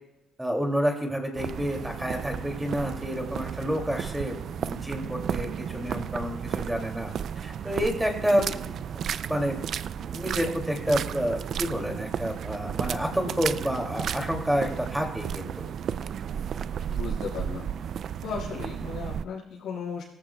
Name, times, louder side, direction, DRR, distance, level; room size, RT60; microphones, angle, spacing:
voice 1, 0.4-7.1 7.4-8.8 9.3-9.6 9.9-15.7, equal, 5° right, 2 dB, 2.5 m, -29 dB
sound 1, 1.4-19.2, right 8 dB, 65° right, 0.3 m, -33 dB
voice 2, 16.9-17.7 18.2-20.0, left 6 dB, 85° left, -5 dB, 4.8 m, -35 dB
17.5 x 14.0 x 2.3 m, 0.95 s
cardioid pair, 90°, 0 cm